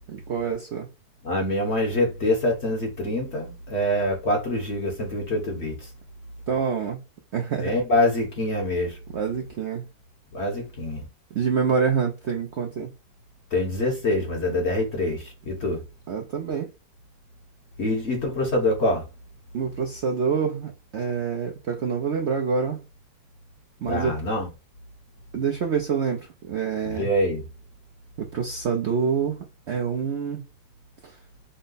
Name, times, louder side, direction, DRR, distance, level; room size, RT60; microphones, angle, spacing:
voice 1, 0.1-0.9 6.5-7.0 7.3-7.8 9.1-9.8 11.3-12.9 16.1-16.7 19.5-22.8 23.8-24.2 25.3-27.1 28.2-30.4 31.0-31.1, right 6 dB, 60° right, 0.7 m, -26 dB
voice 2, 1.2-5.7 7.6-9.0 10.3-11.0 13.5-15.8 17.8-19.0 23.8-24.5 26.8-27.4, left 1 dB, 45° left, 1.3 m, -25 dB
5.3 x 2.2 x 3.9 m
omnidirectional pair, 1.8 m